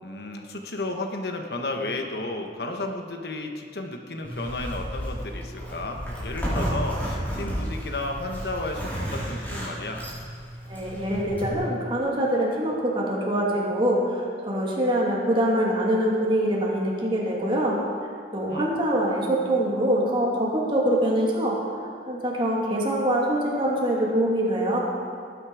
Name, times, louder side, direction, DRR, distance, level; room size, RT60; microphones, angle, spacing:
voice 1, 0.0-10.0 18.5-18.7, left 2 dB, 65° left, 3 dB, 1.2 m, -33 dB
Zipper (clothing), 4.2-11.5, equal, 10° left, 4.1 m, -32 dB
voice 2, 10.7-17.8 18.3-21.6 22.1-24.8, right 1 dB, 30° right, -3 dB, 2.6 m, -24 dB
18.5 x 9.6 x 4.8 m, 2.3 s
head